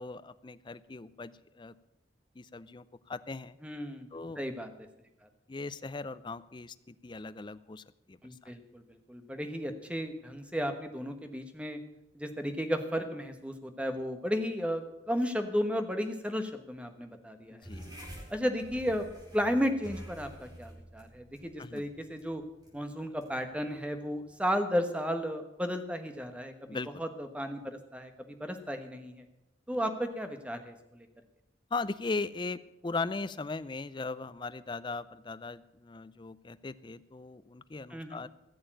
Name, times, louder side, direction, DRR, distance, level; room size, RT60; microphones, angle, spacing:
voice 1, 0.0-1.7 2.4-3.6 4.1-4.4 5.5-8.5 17.5-18.0 21.6-21.8 26.7-26.9 31.7-38.3, left 3 dB, 25° left, 15 dB, 0.4 m, -38 dB
voice 2, 3.6-4.1 4.4-4.7 5.2-5.3 8.2-11.8 12.1-17.7 18.3-19.1 19.3-22.4 22.7-29.2 29.7-31.1 37.9-38.2, equal, 5° right, 7 dB, 1.2 m, -34 dB
sound 1, 17.6-24.5, equal, 20° right, 3.5 m, -49 dB
15.5 x 7.0 x 9.0 m, 0.92 s
head